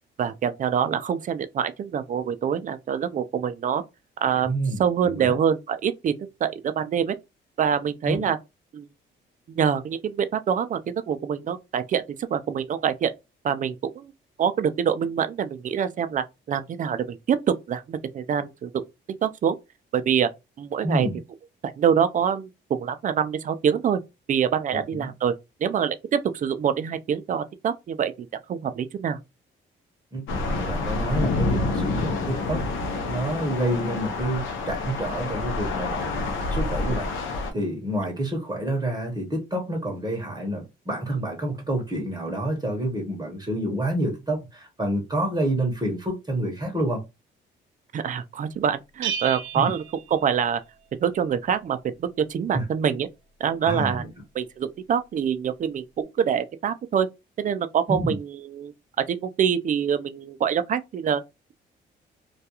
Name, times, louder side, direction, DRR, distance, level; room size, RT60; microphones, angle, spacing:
voice 1, 0.2-3.8 4.2-4.5 4.8-6.1 6.4-7.1 7.6-8.4 8.7-8.9 9.5-10.8 11.1-12.0 12.3-13.1 13.4-14.1 14.4-17.4 17.7-18.8 19.2-19.5 19.9-20.3 20.6-21.1 21.6-24.0 24.3-25.3 25.6-29.2 47.9-49.8 50.1-50.6 51.0-53.1 53.4-54.0 54.3-57.1 57.4-58.7 59.1-61.2, right 8 dB, 40° right, 0.4 m, -25 dB
voice 2, 4.4-5.3 8.1-8.3 20.8-21.2 24.7-25.1 30.1-47.0 49.5-49.7 52.5-52.7 53.6-54.1 57.9-58.2, right 1 dB, 20° right, 0.8 m, -28 dB
sound 1, 30.3-37.5, left 3 dB, 85° left, 0.6 m, -28 dB
Bell, 49.0-50.8, right 8 dB, 80° right, 0.7 m, -33 dB
2.3 x 2.2 x 2.8 m
cardioid pair, 90°, 20 cm